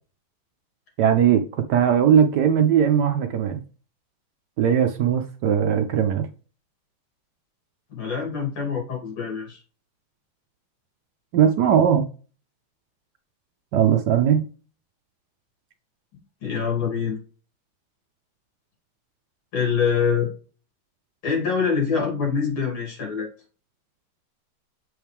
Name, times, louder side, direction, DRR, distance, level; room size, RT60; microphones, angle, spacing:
voice 1, 1.0-3.6 4.6-6.3 11.3-12.0 13.7-14.5, right 8 dB, 70° right, 1.0 m, -19 dB
voice 2, 7.9-9.6 16.4-17.2 19.5-20.3 21.2-23.3, left 6 dB, 85° left, 4.1 m, -25 dB
7.2 x 4.7 x 3.5 m
omnidirectional pair, 2.3 m